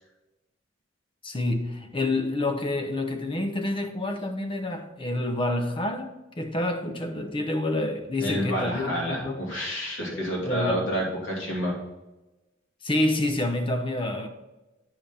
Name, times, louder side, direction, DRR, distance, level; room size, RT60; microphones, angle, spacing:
voice 1, 1.2-9.4 10.1-10.8 12.8-14.3, left 2 dB, 25° left, 0.8 m, -28 dB
voice 2, 8.2-11.8, equal, 75° left, 2.9 m, -29 dB
8.8 x 5.5 x 4.2 m
head